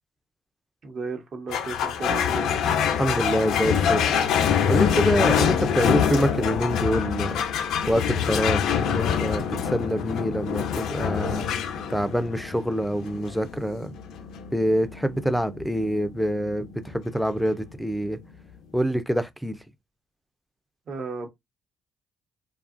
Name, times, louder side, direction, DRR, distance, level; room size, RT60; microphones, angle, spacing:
voice 1, 0.8-2.5 20.9-21.3, right 4 dB, 55° right, 1.0 m, -34 dB
sound 1, 1.5-18.2, left 8 dB, 80° left, 0.4 m, -26 dB
voice 2, 3.0-4.4 4.7-7.4 7.9-11.5 11.9-14.0 14.5-18.2 18.7-19.7, equal, ahead, 0.4 m, -26 dB
2.8 x 2.3 x 2.5 m
cardioid pair, 90°, 0 cm